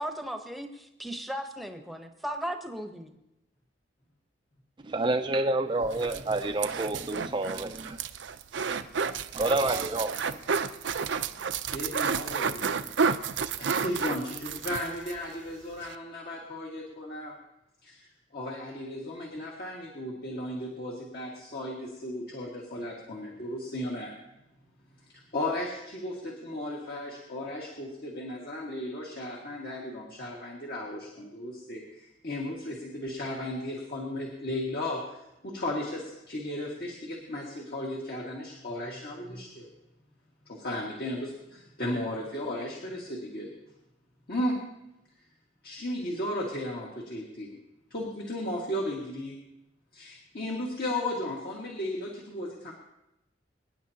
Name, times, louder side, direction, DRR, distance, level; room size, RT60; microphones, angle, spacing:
voice 1, 0.0-3.1, equal, ahead, 0.9 m, -36 dB
voice 2, 4.8-8.0 9.3-10.4, right 2 dB, 25° right, 0.4 m, -28 dB
sound 1, 5.8-15.2 15.5-15.6 15.8-16.0, right 6 dB, 70° right, 0.5 m, -31 dB
voice 3, 11.7-12.9 13.6-17.3 17.8-24.1 25.0-39.7 40.4-43.5 44.3-44.6 45.6-47.5 47.9-49.4 49.9-52.7, left 1 dB, 55° left, 1.8 m, -35 dB
25.0 x 10.0 x 2.8 m
head